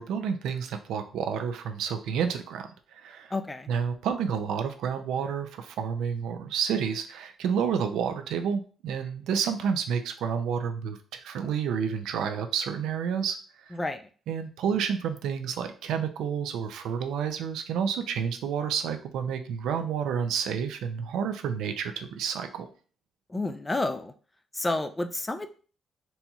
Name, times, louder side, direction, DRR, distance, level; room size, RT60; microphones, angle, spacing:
voice 1, 0.0-3.3 3.7-13.4 13.6-13.8 14.3-22.7, right 7 dB, 85° right, 7 dB, 0.4 m, -30 dB
voice 2, 3.3-3.7 13.7-14.0 23.3-24.1 24.5-25.5, left 2 dB, 20° left, 9 dB, 0.4 m, -30 dB
4.1 x 2.8 x 2.3 m, 0.39 s
cardioid pair, 90°, 0 cm